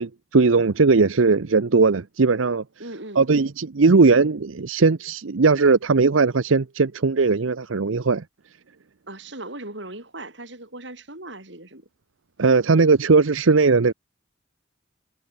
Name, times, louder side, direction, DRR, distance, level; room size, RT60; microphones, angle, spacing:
voice 1, 0.0-2.6 3.2-8.2 12.4-13.9, right 4 dB, 85° right, 0.7 m, -18 dB
voice 2, 2.8-3.2 9.1-11.9, right 2 dB, 65° right, 6.0 m, -38 dB
head